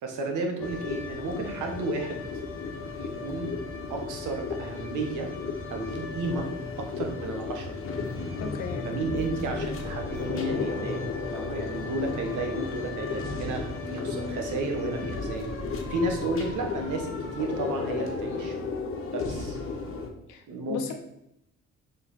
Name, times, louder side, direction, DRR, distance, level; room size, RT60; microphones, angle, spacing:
voice 1, 0.0-2.2 3.0-3.5 3.9-5.3 5.7-6.5 6.8-7.7 8.8-11.0 11.3-18.6 19.1-19.6 20.5-20.9, right 3 dB, 80° right, 3 dB, 1.3 m, -32 dB
sound 1, 0.6-20.1, left 4 dB, 45° left, 1.2 m, -34 dB
voice 2, 8.4-8.8 20.3-20.9, left 7 dB, 85° left, 5 dB, 1.0 m, -36 dB
5.8 x 4.4 x 4.2 m, 0.81 s
cardioid pair, 90°, 30 cm